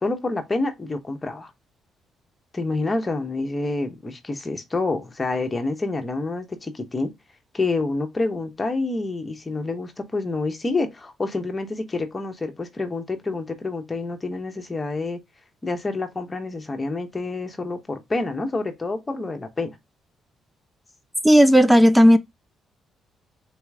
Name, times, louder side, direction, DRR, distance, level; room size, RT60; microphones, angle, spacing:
voice 1, 0.0-1.5 2.5-7.1 7.5-15.2 15.6-19.7, left 3 dB, 25° left, 1.1 m, -28 dB
voice 2, 21.2-22.2, equal, 5° right, 0.4 m, -13 dB
4.1 x 3.0 x 3.5 m
cardioid pair, 90°, 0 cm